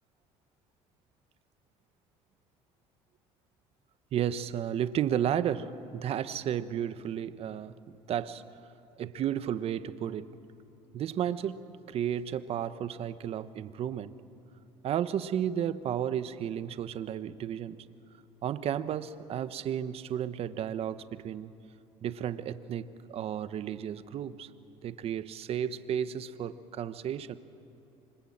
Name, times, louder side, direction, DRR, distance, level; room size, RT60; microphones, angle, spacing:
voice 1, 4.1-7.8 8.1-8.4 9.0-10.3 10.9-14.1 14.8-17.8 18.4-21.5 22.0-24.5 24.8-27.4, right 9 dB, 55° right, 13 dB, 1.2 m, -33 dB
27.0 x 25.0 x 8.8 m, 2.9 s
cardioid pair, 110°, 12 cm